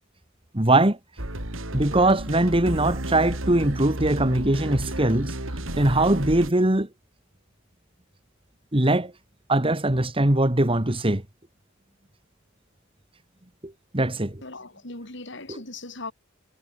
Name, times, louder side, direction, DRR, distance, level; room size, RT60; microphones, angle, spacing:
voice 1, 0.5-1.0 1.7-5.3 5.8-6.9 8.7-9.1 9.5-11.2 13.6-14.4, right 1 dB, 25° right, 2.0 m, -21 dB
sound 1, 1.2-6.5, right 1 dB, 80° right, 4.8 m, -32 dB
voice 2, 14.4-16.1, left 2 dB, 60° left, 6.6 m, -38 dB
head